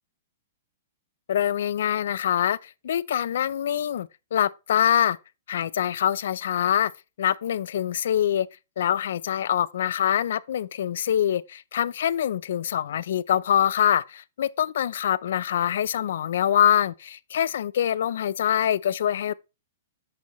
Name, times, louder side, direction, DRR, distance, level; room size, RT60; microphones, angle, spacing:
voice 1, 1.3-5.2 5.5-6.9 7.2-8.5 8.8-19.3, left 10 dB, 65° left, 0.4 m, -24 dB
6.1 x 5.7 x 3.0 m
hypercardioid pair, 170°, 0 cm